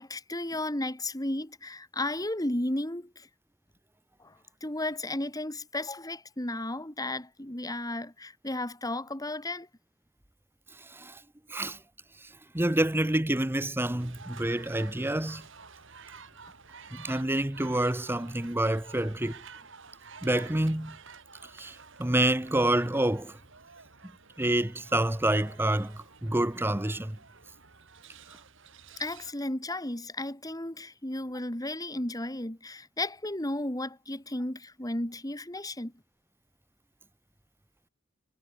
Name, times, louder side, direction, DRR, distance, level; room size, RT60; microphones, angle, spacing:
voice 1, 0.0-3.3 4.2-4.4 4.6-9.7 29.0-35.9, left 1 dB, 20° left, 2.6 m, -34 dB
voice 2, 10.8-11.2 11.5-11.8 12.2-15.5 16.9-19.4 20.2-21.0 21.4-23.4 24.4-27.2, right 1 dB, 10° right, 0.9 m, -28 dB
sound 1, 14.0-29.3, right 5 dB, 65° right, 5.9 m, -51 dB
head